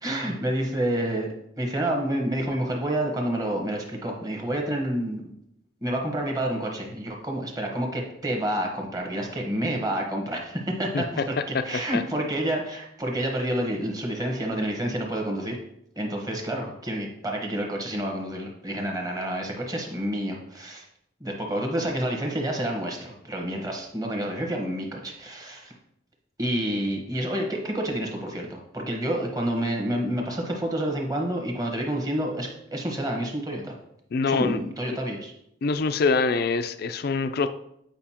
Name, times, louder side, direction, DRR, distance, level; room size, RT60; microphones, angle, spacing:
voice 1, 0.0-1.3 1.6-5.3 5.8-11.2 11.6-15.6 16.0-20.9 21.2-25.7 26.4-33.7 34.2-35.3, right 1 dB, 20° right, 1 dB, 1.1 m, -29 dB
voice 2, 10.9-11.2 11.9-12.0 34.1-34.6 35.6-37.5, left 4 dB, 50° left, 10 dB, 0.4 m, -24 dB
8.9 x 5.2 x 2.9 m, 0.76 s
head